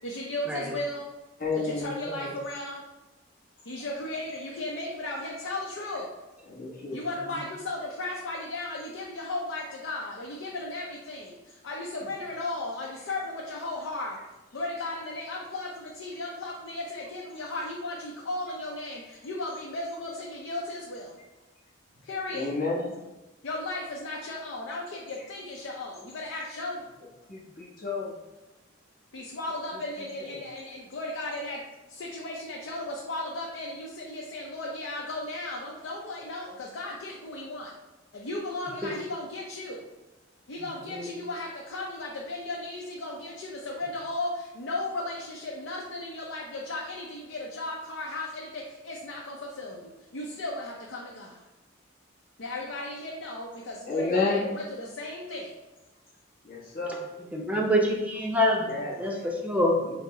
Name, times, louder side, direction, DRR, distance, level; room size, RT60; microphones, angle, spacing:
voice 1, 0.0-1.1 1.5-2.8 3.6-6.1 6.9-14.2 14.5-21.2 22.0-22.5 23.4-26.9 29.1-31.6 31.9-37.7 38.1-39.8 40.5-51.4 52.4-55.5, left 2 dB, 80° left, -2 dB, 0.5 m, -35 dB
voice 2, 1.4-1.9 6.5-7.0 22.3-22.8 27.3-28.1 53.9-54.5 56.4-57.0 58.7-58.9, left 3 dB, 50° left, -4 dB, 1.0 m, -29 dB
voice 3, 40.6-41.1 57.3-59.8, left 1 dB, 10° right, -1 dB, 0.6 m, -27 dB
5.0 x 2.0 x 3.6 m, 1.1 s
head